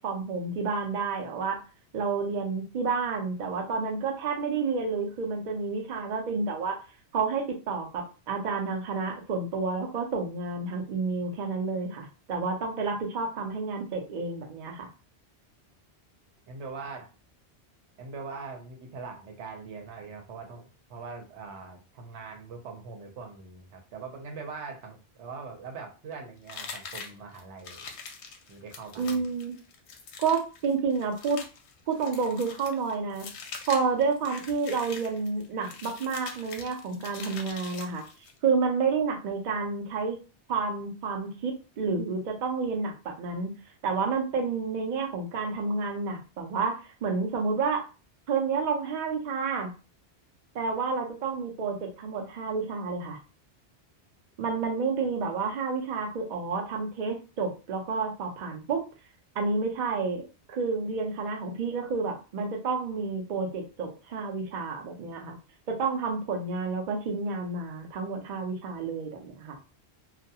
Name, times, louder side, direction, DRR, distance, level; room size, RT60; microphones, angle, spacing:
voice 1, 0.0-1.6 1.9-6.8 7.1-14.9 29.0-29.6 30.2-31.4 31.9-33.3 33.7-38.0 38.4-40.2 40.5-43.5 43.8-47.8 48.3-49.7 50.5-53.2 54.4-58.8 59.4-60.2 60.5-65.3 65.7-69.6, right 4 dB, 55° right, 2 dB, 0.6 m, -30 dB
voice 2, 16.5-17.1 18.0-20.6 20.9-27.9 28.5-29.2, right 4 dB, 85° right, 3 dB, 1.0 m, -42 dB
sound 1, 26.5-38.4, left 5 dB, 75° left, 0.8 m, -43 dB
2.3 x 2.2 x 2.7 m, 0.33 s
omnidirectional pair, 1.1 m